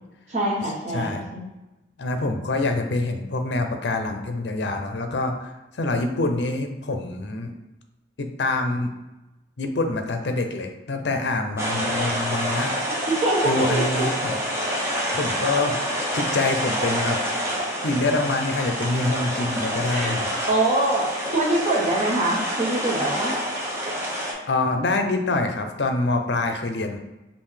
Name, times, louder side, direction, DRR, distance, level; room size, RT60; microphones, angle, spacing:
voice 1, 0.3-1.5 13.1-14.1 19.9-20.1 20.5-21.1 21.3-23.3, right 2 dB, 40° right, -3 dB, 1.1 m, -24 dB
voice 2, 0.9-1.3 2.0-7.5 8.2-8.9 9.6-12.7 13.4-14.4 15.1-15.8 16.1-17.2 17.8-20.3 24.5-27.0, left 2 dB, 65° left, 5 dB, 0.6 m, -25 dB
sound 1, 11.6-24.3, equal, 15° right, 0.7 m, -27 dB
5.3 x 2.5 x 3.3 m, 1.0 s
head